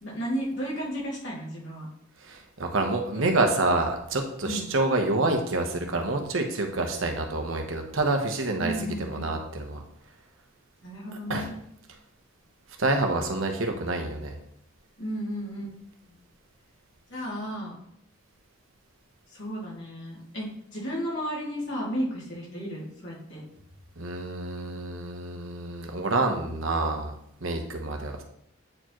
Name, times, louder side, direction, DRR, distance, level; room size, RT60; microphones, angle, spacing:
voice 1, 0.0-1.9 3.1-3.2 4.4-4.7 8.6-9.2 10.8-11.6 15.0-15.8 16.0-16.1 17.1-17.8 19.3-23.4, equal, 65° left, -5 dB, 2.6 m, -33 dB
voice 2, 2.2-8.7 9.1-9.8 11.3-11.4 12.8-14.4 24.0-27.1 27.4-28.2, right 2 dB, 85° right, 3 dB, 1.0 m, -27 dB
8.8 x 4.5 x 3.1 m, 0.73 s
head